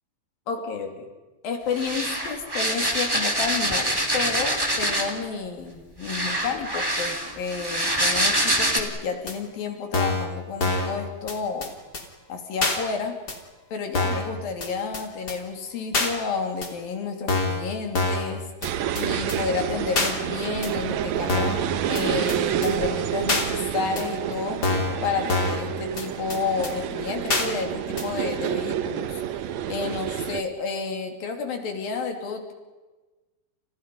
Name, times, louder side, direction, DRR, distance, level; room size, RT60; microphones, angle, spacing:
voice 1, 0.5-0.9 1.4-11.7 12.3-13.2 13.7-18.4 18.9-21.6 21.9-24.6 25.0-29.2 29.7-32.5, left 5 dB, 70° left, 4 dB, 4.5 m, -30 dB
sound 1, 1.7-5.2 6.0-8.8, right 1 dB, 5° right, 2.4 m, -25 dB
sound 2, 9.3-9.4 9.9-10.3 10.6-10.9 11.3-11.4 11.6-11.7 11.9-12.0 12.6-12.8 13.3-13.4 13.9-14.3 14.6-14.7 14.9-15.0 15.3-15.4 15.9-16.1 16.6-16.7 17.3-17.6 17.9-18.3 18.6-18.7 19.0-19.1 19.3-19.4 20.0-20.1 20.6-20.7 21.3-21.6 22.0-22.1 22.3-22.4 22.6-22.7 23.3-23.5 24.0-24.1 24.6-25.0 25.3-25.6 26.0-26.1 26.3-26.4 26.6-26.7 27.3-27.5 28.0-28.1, left 3 dB, 30° left, 3.4 m, -25 dB
sound 3, 18.6-30.4, right 10 dB, 65° right, 1.9 m, -29 dB
30.0 x 28.5 x 5.4 m, 1.2 s
omnidirectional pair, 4.3 m